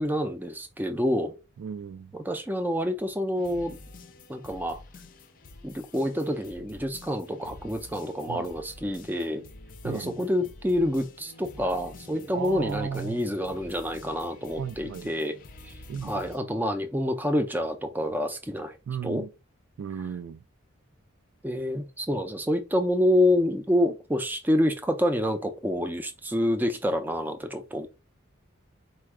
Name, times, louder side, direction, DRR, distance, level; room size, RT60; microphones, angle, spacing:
voice 1, 0.0-1.4 2.1-3.8 4.3-4.8 5.6-9.4 9.8-15.4 15.6-15.7 16.0-18.8 19.0-19.2 21.4-27.9, left 1 dB, 10° right, 0.5 m, -27 dB
voice 2, 1.6-2.2 8.3-8.5 9.8-10.3 12.3-13.2 14.6-15.1 15.9-16.5 18.9-19.3 19.8-20.4, right 7 dB, 75° right, 0.3 m, -35 dB
sound 1, 3.4-16.4, left 2 dB, 40° left, 0.5 m, -48 dB
4.3 x 2.3 x 4.6 m
head